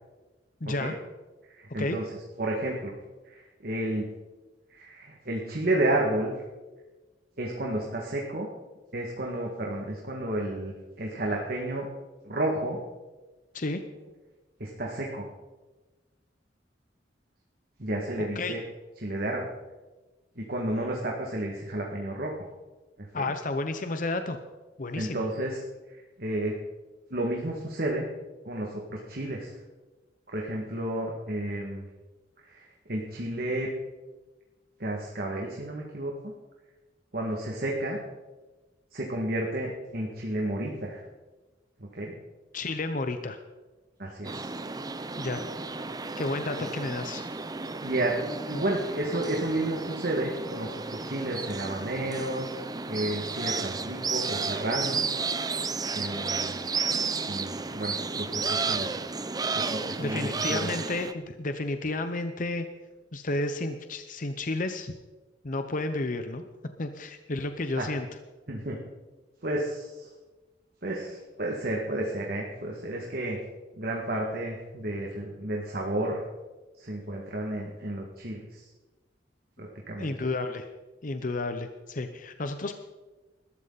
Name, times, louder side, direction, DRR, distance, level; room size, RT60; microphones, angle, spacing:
voice 1, 0.6-0.9 1.8-2.0 13.5-13.8 18.2-18.6 23.1-24.4 24.8-25.2 42.5-43.4 45.2-45.4 46.2-47.2 48.5-48.6 60.0-62.7 63.1-64.9 65.4-66.4 66.8-68.1 80.0-80.7 81.0-82.8, left 2 dB, 45° left, 8 dB, 0.8 m, -31 dB
voice 2, 1.5-2.0 2.4-2.9 3.2-4.1 4.7-6.4 7.4-8.5 8.9-11.9 12.2-12.8 14.6-15.3 17.8-18.6 19.0-19.5 20.4-22.4 23.0-23.3 25.0-25.6 25.9-26.6 27.1-28.1 28.4-29.5 30.3-31.9 32.4-33.7 34.8-36.3 37.1-38.0 38.9-41.0 41.8-42.1 44.0-44.5 46.6-46.7 47.8-52.5 52.9-55.0 55.9-56.6 57.3-59.0 59.5-60.7 67.8-67.9 68.5-68.8 69.4-70.1 70.8-73.4 73.7-76.2 76.8-78.7 79.6-80.1, right 1 dB, 55° right, -1 dB, 2.0 m, -31 dB
sound 1, 44.2-61.1, right 4 dB, 20° right, 0.6 m, -32 dB
20.5 x 13.0 x 4.1 m, 1.2 s
head